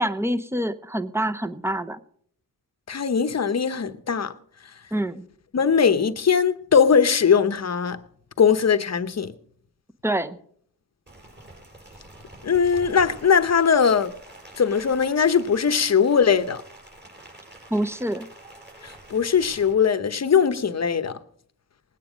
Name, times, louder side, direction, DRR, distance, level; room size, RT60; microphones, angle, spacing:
voice 1, 0.0-2.0 4.9-5.3 10.0-10.4 17.7-18.3, right 1 dB, 5° right, 0.8 m, -26 dB
voice 2, 2.9-4.3 5.5-8.0 8.4-9.3 12.4-14.1 14.6-16.6 18.8-21.2, left 6 dB, 45° left, 0.9 m, -20 dB
Rain, 11.1-19.7, right 1 dB, 30° right, 5.7 m, -46 dB
19.5 x 9.1 x 5.1 m
wide cardioid pair, 90°, 36 cm